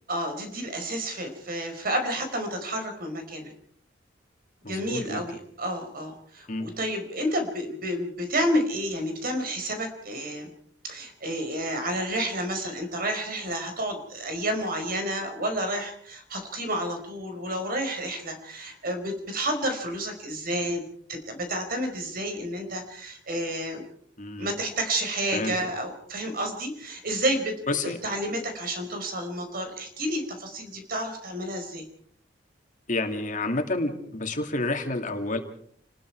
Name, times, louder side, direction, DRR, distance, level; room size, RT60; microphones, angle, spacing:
voice 1, 0.1-3.5 4.7-10.5 10.8-20.8 21.1-23.8 24.4-31.8, right 1 dB, 55° right, 6 dB, 4.9 m, -30 dB
voice 2, 4.6-5.2 6.5-6.7 24.2-24.5 25.3-25.5 27.7-28.0 32.9-35.4, left 2 dB, 45° left, 4 dB, 2.7 m, -29 dB
29.0 x 20.0 x 4.7 m, 0.62 s
head